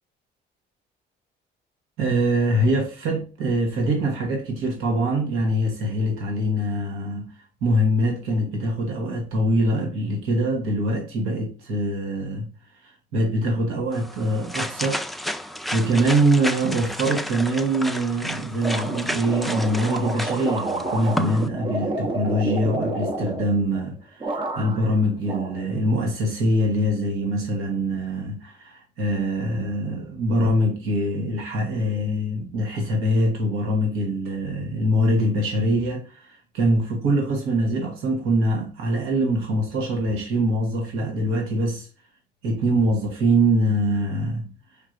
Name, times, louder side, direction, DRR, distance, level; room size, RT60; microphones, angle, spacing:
voice 1, 2.0-12.5 12.8-41.9 42.4-44.5, right 1 dB, 85° right, 1.2 m, -24 dB
sound 1, 13.9-21.5, equal, ahead, 0.4 m, -32 dB
sound 2, 18.6-23.9 24.2-24.9 25.3-26.1, right 2 dB, 25° right, 0.7 m, -30 dB
5.1 x 3.2 x 2.5 m
cardioid pair, 85°, 21 cm